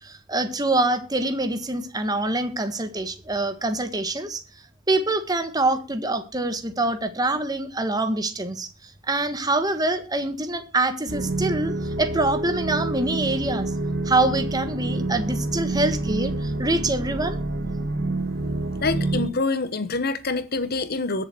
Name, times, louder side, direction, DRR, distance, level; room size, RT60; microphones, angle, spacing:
voice 1, 0.0-4.4 4.9-8.7 9.1-13.7 14.0-17.4, right 2 dB, 20° right, 1.5 m, -25 dB
sound 1, 11.1-19.3, right 2 dB, 60° right, 1.9 m, -27 dB
voice 2, 18.8-21.3, left 3 dB, 55° left, 1.2 m, -26 dB
21.5 x 7.3 x 4.3 m
head